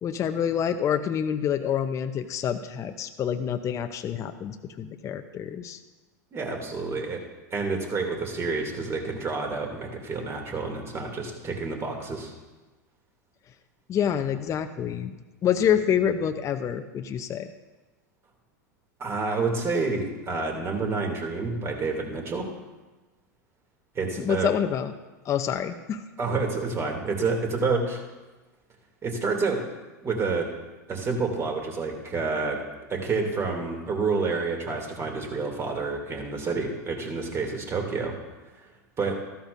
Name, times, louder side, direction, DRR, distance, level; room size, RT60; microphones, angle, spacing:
voice 1, 0.0-5.8 13.9-15.2 15.4-17.5 24.2-24.9 25.2-26.0, left 8 dB, 30° left, 7 dB, 0.7 m, -27 dB
voice 2, 6.3-7.2 7.5-12.3 19.0-22.5 23.9-24.5 26.2-28.0 29.0-29.6 30.0-30.5 30.9-32.6 32.9-38.1 39.0-39.2, right 4 dB, 25° right, 2 dB, 2.7 m, -28 dB
14.0 x 13.0 x 2.6 m, 1.2 s
hypercardioid pair, 95°, 10 cm